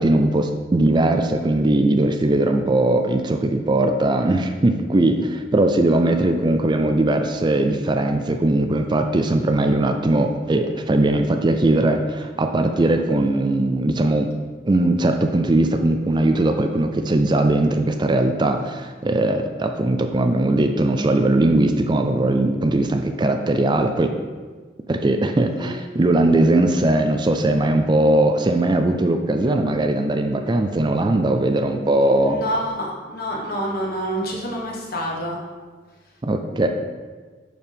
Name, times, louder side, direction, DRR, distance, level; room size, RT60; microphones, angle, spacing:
voice 1, 0.0-14.3 14.6-24.1 24.9-32.4 36.2-36.7, right 2 dB, 25° right, 6 dB, 0.4 m, -19 dB
voice 2, 25.3-25.7 32.2-35.4, equal, 55° left, -1 dB, 1.5 m, -28 dB
11.0 x 4.6 x 3.4 m, 1.4 s
head